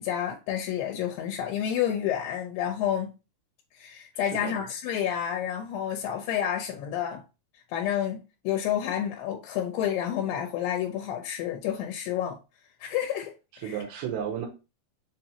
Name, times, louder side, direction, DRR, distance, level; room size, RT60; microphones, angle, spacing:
voice 1, 0.0-3.1 3.7-7.2 7.7-12.4 12.8-13.3 13.6-13.8, left 10 dB, 80° left, 2.6 m, -29 dB
voice 2, 4.2-4.6 13.6-14.5, right 9 dB, 85° right, 3.0 m, -33 dB
6.9 x 2.7 x 2.8 m
omnidirectional pair, 4.8 m